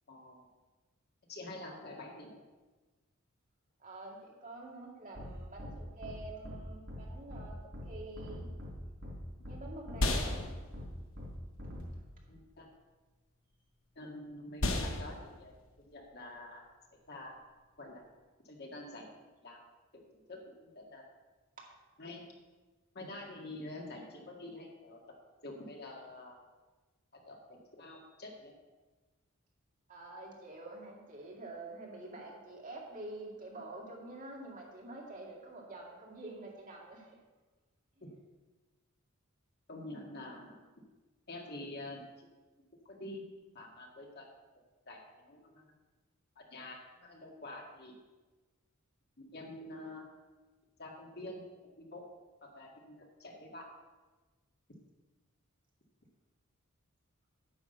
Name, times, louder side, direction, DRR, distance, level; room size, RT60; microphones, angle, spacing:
voice 1, 0.1-0.5 1.3-2.4 9.4-9.5 12.3-12.7 14.0-15.5 15.9-16.6 16.9-17.3 17.8-18.0 18.4-19.1 19.4-19.6 19.9-20.0 20.3-21.1 22.0-22.2 22.9-25.0 25.4-26.4 27.1-28.5 38.0-38.1 39.7-40.6 41.3-42.3 42.9-43.3 43.5-44.3 44.9-45.0 45.3-45.7 46.4-48.0 49.2-50.0 50.8-51.4 51.8-52.1 52.4-53.7, left 2 dB, 50° left, 0 dB, 2.0 m, -47 dB
voice 2, 3.8-7.6 7.8-8.5 9.5-10.5 21.6-21.8 29.9-37.2 38.0-38.1, right 2 dB, 40° right, -2 dB, 2.3 m, -47 dB
sound 1, 5.2-5.3 5.6-5.7 6.0-6.1 6.4-6.6 6.9-7.0 7.3-7.4 7.7-7.9 8.2-8.7 9.0-9.1 9.4-9.6 9.9-10.0 10.3-10.4 10.7-10.9 11.2-11.3 11.6-11.8, left 1 dB, 60° right, 4.2 m, -44 dB
sound 2, 8.6-18.2, left 1 dB, 70° left, 1.3 m, -39 dB
9.7 x 6.2 x 8.0 m, 1.2 s
head